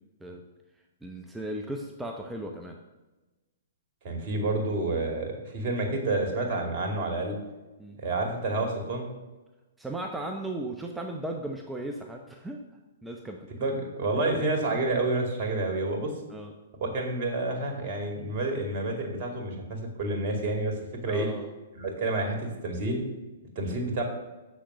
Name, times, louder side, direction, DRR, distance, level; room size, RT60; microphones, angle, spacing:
voice 1, 1.0-2.8 7.8-8.0 9.8-12.6 13.0-13.5 16.3-16.5 21.1-21.5, right 1 dB, 5° right, 2 dB, 0.8 m, -36 dB
voice 2, 4.0-7.4 8.0-9.1 13.6-16.1 16.8-20.7 21.0-21.3 21.7-23.0 23.6-24.0, right 2 dB, 45° right, 2 dB, 2.6 m, -29 dB
7.7 x 6.5 x 6.8 m, 1.1 s
figure-of-eight pair, 120°, 0 cm